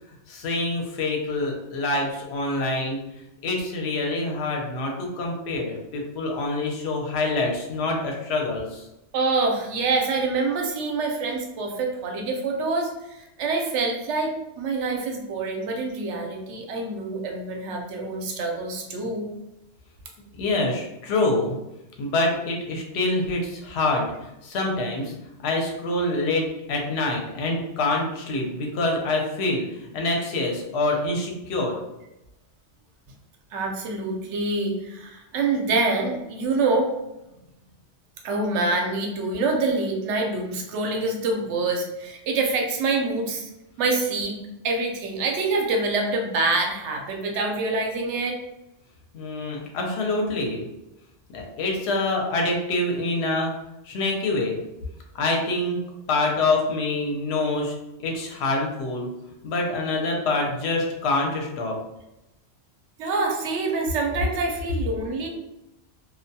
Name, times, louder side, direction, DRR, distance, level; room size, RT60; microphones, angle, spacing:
voice 1, 0.3-3.0 3.4-8.8 20.4-21.6 22.0-24.1 24.4-25.1 25.4-26.4 26.7-29.7 29.9-31.8 49.1-50.6 51.3-53.5 53.9-54.6 55.1-55.8 56.1-57.7 58.0-59.1 59.4-61.8, left 2 dB, 70° left, 1 dB, 0.8 m, -26 dB
voice 2, 9.1-19.3 33.5-36.9 38.2-43.5 43.8-44.3 44.6-48.4 63.0-65.3, right 3 dB, 85° right, 2 dB, 0.9 m, -26 dB
2.3 x 2.2 x 2.6 m, 0.91 s
omnidirectional pair, 1.2 m